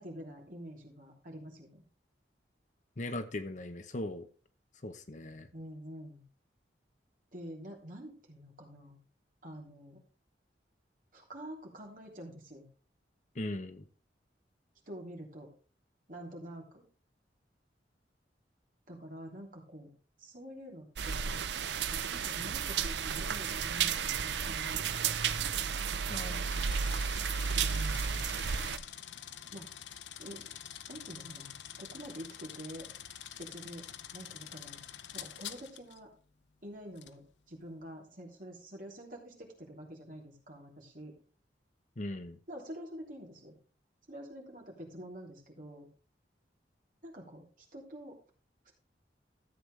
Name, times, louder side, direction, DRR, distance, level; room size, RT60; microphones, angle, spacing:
voice 1, 0.0-1.8 5.5-6.2 7.3-9.0 9.4-10.0 11.1-12.7 14.9-15.5 16.1-16.9 18.9-19.9 20.2-21.3 22.1-25.1 27.7-28.3 29.5-29.7 30.2-30.6 30.9-32.9 33.4-33.9 34.1-34.8 35.1-36.1 36.6-41.2 42.5-43.5 44.1-45.9 47.0-47.5 47.7-48.2, equal, 50° right, 0 dB, 3.2 m, -47 dB
voice 2, 3.0-4.3 4.8-5.5 13.3-13.8 26.1-26.8 42.0-42.4, left 1 dB, 45° left, 10 dB, 0.9 m, -39 dB
sound 1, 21.0-28.8, right 7 dB, 75° right, 0.6 m, -33 dB
sound 2, 26.5-36.0 37.0-37.1, left 10 dB, 90° left, 0.7 m, -47 dB
13.5 x 8.0 x 3.3 m, 0.39 s
head